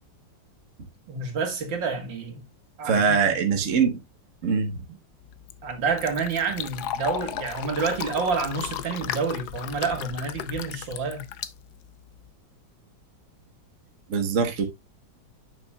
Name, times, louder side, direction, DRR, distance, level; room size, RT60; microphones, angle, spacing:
voice 1, 1.1-2.4 2.8-3.0 5.6-11.2, right 4 dB, 70° right, 2.4 m, -28 dB
voice 2, 2.8-4.0 4.4-4.8 14.1-14.6, right 6 dB, 45° right, 1.4 m, -22 dB
Fill (with liquid), 5.2-12.3, left 10 dB, 65° left, 1.1 m, -35 dB
8.9 x 7.0 x 2.3 m
omnidirectional pair, 2.1 m